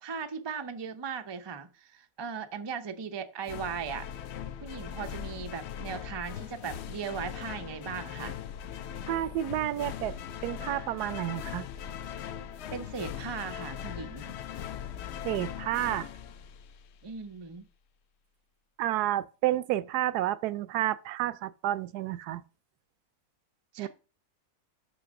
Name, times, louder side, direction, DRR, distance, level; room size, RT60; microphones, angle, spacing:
voice 1, 0.0-4.1 4.6-8.4 12.7-14.4 17.0-17.7 23.7-23.9, right 6 dB, 40° right, 0.3 m, -38 dB
sound 1, 3.4-17.1, left 9 dB, 75° left, 0.6 m, -40 dB
voice 2, 9.1-11.7 15.2-16.1 18.8-22.4 23.8-23.9, right 13 dB, 90° right, 1.1 m, -30 dB
5.9 x 5.7 x 6.3 m
omnidirectional pair, 1.6 m